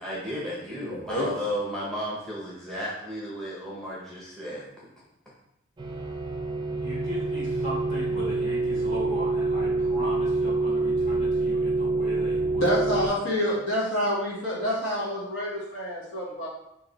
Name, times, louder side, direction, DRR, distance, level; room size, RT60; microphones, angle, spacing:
voice 1, 0.0-4.9, equal, 5° left, -6 dB, 0.7 m, -33 dB
voice 2, 0.8-1.3 12.5-16.5, equal, 75° left, -6 dB, 1.2 m, -27 dB
sound 1, 5.8-13.1, right 2 dB, 25° right, 0.4 m, -26 dB
voice 3, 6.8-13.6 15.5-15.6, equal, 35° left, -7 dB, 1.5 m, -38 dB
3.1 x 2.6 x 3.8 m, 0.82 s
head